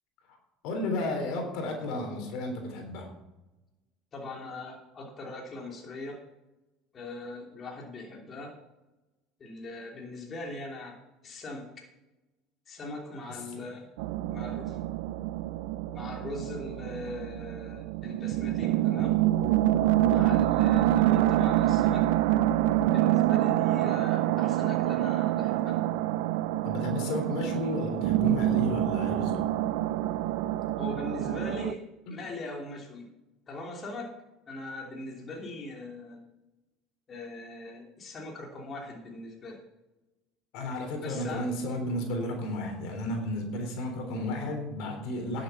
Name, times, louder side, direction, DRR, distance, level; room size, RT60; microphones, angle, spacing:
voice 1, 0.6-3.1 13.3-13.7 26.6-29.4 40.5-45.4, left 1 dB, 65° left, 4 dB, 3.6 m, -33 dB
voice 2, 4.1-6.2 6.9-8.6 9.4-11.0 11.2-11.9 12.7-13.9 14.3-14.8 15.9-19.2 20.0-22.1 22.9-25.8 30.8-31.8 32.1-33.1 33.5-34.1 34.5-36.2 37.1-39.6 41.0-41.5, left 2 dB, 35° left, -1 dB, 3.1 m, -40 dB
sound 1, 14.0-31.7, right 14 dB, 80° right, 0.6 m, -26 dB
11.0 x 8.0 x 6.9 m, 1.0 s
supercardioid pair, 105°, 0 cm